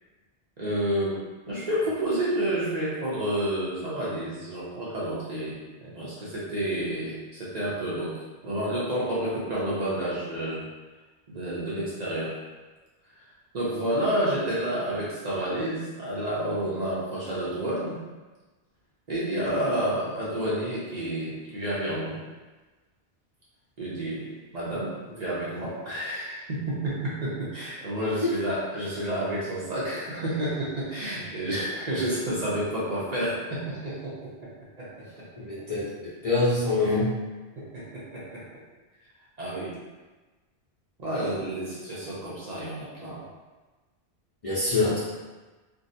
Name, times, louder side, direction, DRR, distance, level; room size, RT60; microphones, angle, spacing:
voice 1, 0.6-1.2 1.5-8.1 8.4-10.6 11.3-12.3 13.5-18.0 19.1-22.2 23.8-24.3 24.5-34.5 34.8-35.3 36.8-37.0 37.6-38.4 39.4-39.7 41.0-43.2, right 1 dB, 45° right, -8 dB, 0.7 m, -30 dB
voice 2, 35.4-37.1 44.4-45.0, left 3 dB, 40° left, -10 dB, 0.6 m, -25 dB
3.5 x 2.0 x 2.6 m, 1.2 s
omnidirectional pair, 1.1 m